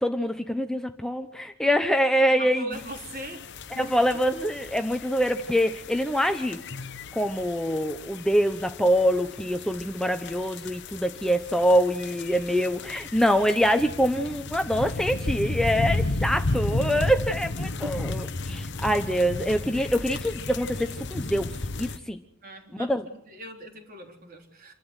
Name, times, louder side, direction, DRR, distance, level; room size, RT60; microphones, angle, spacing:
voice 1, 0.0-2.7 3.7-6.6 7.1-22.2 22.7-23.1, equal, 5° left, 7 dB, 0.9 m, -25 dB
voice 2, 2.4-3.4 3.7-4.0 17.8-17.9 22.4-24.7, right 2 dB, 45° right, 3 dB, 3.8 m, -40 dB
sound 1, 2.7-22.0, left 2 dB, 60° left, 1.0 m, -33 dB
27.5 x 12.5 x 8.2 m, 0.77 s
head